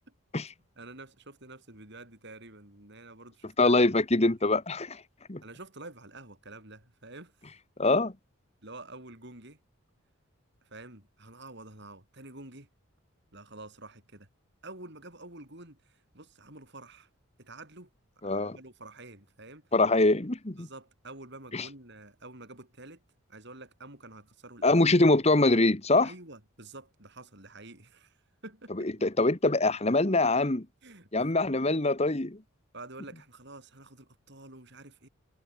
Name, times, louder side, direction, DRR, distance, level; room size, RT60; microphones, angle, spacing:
voice 1, 0.8-3.8 5.4-7.3 8.6-9.6 10.6-12.7 13.3-14.3 14.6-17.1 17.4-17.9 18.2-19.7 20.6-23.0 23.3-24.8 26.0-28.2 28.4-28.9 30.8-31.3 32.7-35.1, right 2 dB, 50° right, 7.0 m, -48 dB
voice 2, 3.6-5.0 5.3-5.4 7.8-8.1 18.2-18.6 19.7-20.7 21.5-21.7 24.6-26.1 28.8-30.7 31.1-32.4, left 2 dB, 30° left, 1.3 m, -24 dB
head